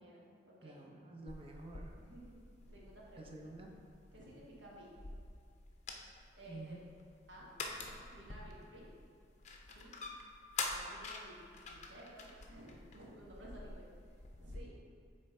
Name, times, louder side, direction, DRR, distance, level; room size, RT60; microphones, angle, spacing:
voice 1, 0.0-0.8 2.0-3.4 4.1-4.9 6.4-6.8 7.3-7.5 8.1-8.9 9.6-9.9 10.7-13.9 14.4-14.8, equal, 80° right, -4 dB, 1.3 m, -55 dB
voice 2, 0.6-2.0 3.2-3.7 6.5-6.8, right 2 dB, 30° right, 1 dB, 0.6 m, -49 dB
sound 1, 1.3-14.6, left 3 dB, 40° left, 0.5 m, -47 dB
7.6 x 3.3 x 4.3 m, 2.2 s
head